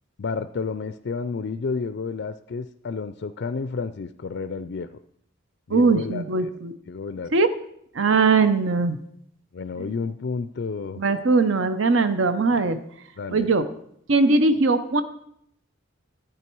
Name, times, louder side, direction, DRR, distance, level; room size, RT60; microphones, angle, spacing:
voice 1, 0.2-4.9 5.7-6.2 6.9-7.3 9.5-11.0 13.2-13.5, left 4 dB, 55° left, 12 dB, 0.4 m, -31 dB
voice 2, 5.7-6.7 7.3-7.5 7.9-9.0 11.0-12.8 13.3-13.7 14.1-15.0, right 3 dB, 65° right, 11 dB, 0.7 m, -20 dB
11.0 x 8.9 x 4.6 m, 0.71 s
head